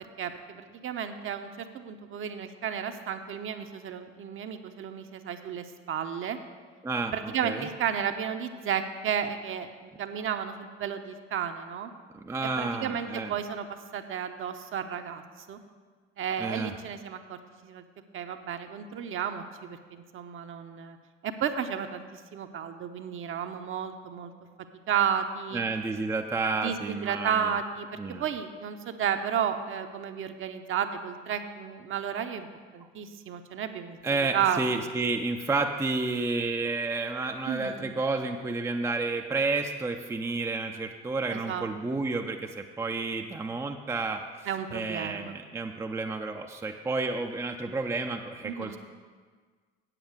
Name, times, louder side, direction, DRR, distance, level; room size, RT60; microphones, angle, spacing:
voice 1, 0.2-6.4 7.1-11.9 12.6-15.2 15.5-15.6 16.2-17.8 18.1-21.0 21.2-24.3 24.6-25.6 26.6-32.5 32.7-34.0 34.3-34.6 37.5-37.8 41.3-42.0 44.5-45.4 48.4-48.8, right 8 dB, 35° right, 7 dB, 0.8 m, -33 dB
voice 2, 6.8-7.7 12.1-13.3 16.4-16.7 25.5-27.5 28.0-28.2 34.0-44.2 44.7-48.8, right 3 dB, 10° right, 4 dB, 0.5 m, -31 dB
8.6 x 7.6 x 6.3 m, 1.5 s
figure-of-eight pair, 60°, 35 cm